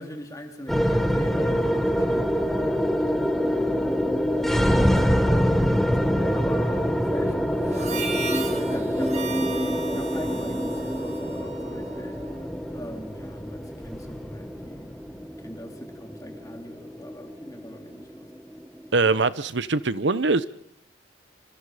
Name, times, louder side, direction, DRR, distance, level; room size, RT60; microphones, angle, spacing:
voice 1, 0.0-4.0 4.3-5.6 5.9-12.2 12.7-14.9 15.4-18.3, equal, 15° left, 3 dB, 3.4 m, -40 dB
sound 1, 0.7-19.1, equal, ahead, 1.6 m, -25 dB
Harmonica, 7.6-12.3, right 5 dB, 35° right, 2.5 m, -36 dB
voice 2, 18.9-20.5, right 3 dB, 70° right, 15 dB, 0.9 m, -22 dB
27.0 x 25.5 x 5.0 m, 0.67 s
head